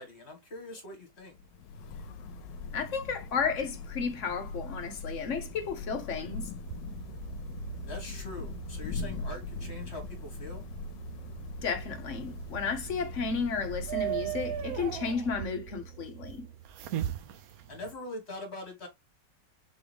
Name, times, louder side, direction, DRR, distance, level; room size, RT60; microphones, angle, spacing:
voice 1, 0.0-1.4 7.9-10.6 17.7-18.9, left 2 dB, 40° left, 1.9 m, -43 dB
Thunder / Rain, 1.2-15.6, left 3 dB, 90° left, 1.3 m, -41 dB
voice 2, 2.7-6.5 11.6-16.4, left 5 dB, 55° left, 1.0 m, -33 dB
sound 1, 6.6-17.9, right 12 dB, 70° right, 0.9 m, -40 dB
4.3 x 3.6 x 3.3 m
omnidirectional pair, 1.9 m